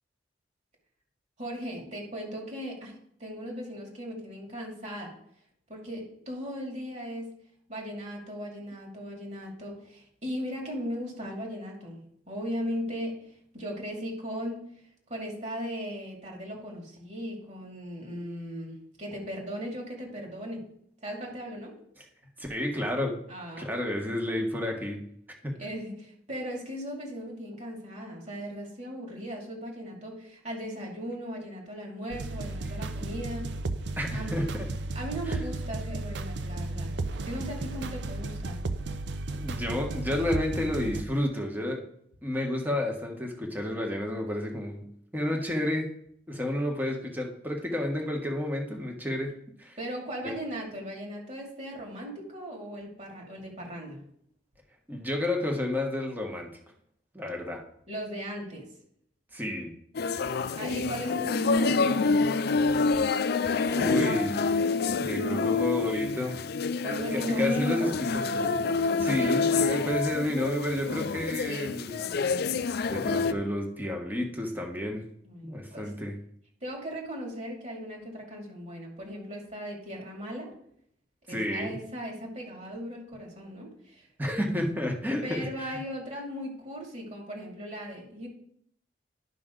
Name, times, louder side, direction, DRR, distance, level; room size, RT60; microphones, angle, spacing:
voice 1, 1.4-5.1 5.7-7.4 7.7-12.0 12.3-13.3 13.5-14.7 15.1-20.7 21.0-21.7 23.3-23.7 25.6-33.6 34.1-34.4 34.9-36.9 37.2-38.6 49.8-54.0 57.9-58.7 60.6-62.3 66.8-67.9 69.1-69.4 75.2-75.9 76.6-80.5 81.3-84.1 85.2-88.3, equal, 45° right, 0 dB, 2.5 m, -37 dB
voice 2, 22.4-23.2 23.6-25.0 25.4-25.5 34.0-34.6 35.3-35.4 39.3-41.8 42.2-44.9 45.1-45.9 46.3-49.3 49.6-49.8 50.2-50.3 54.9-56.5 57.1-57.6 59.3-59.7 63.7-64.4 65.0-66.4 67.1-68.6 69.0-72.0 72.9-75.0 75.4-76.2 81.3-81.8 84.2-85.8, left 1 dB, 10° right, 1 dB, 1.4 m, -31 dB
sound 1, 32.1-41.0, right 2 dB, 85° right, 0.6 m, -34 dB
sound 2, 59.9-73.3, left 4 dB, 65° left, 0.4 m, -27 dB
11.0 x 5.9 x 3.8 m, 0.68 s
head